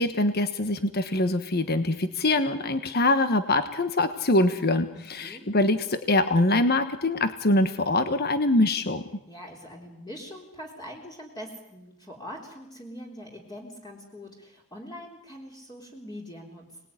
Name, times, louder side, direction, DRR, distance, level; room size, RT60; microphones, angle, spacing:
voice 1, 0.0-9.0, left 2 dB, 45° left, 10 dB, 1.3 m, -24 dB
voice 2, 4.9-5.5 9.3-16.9, equal, 20° left, -1 dB, 3.7 m, -43 dB
29.5 x 20.0 x 9.8 m, 0.86 s
head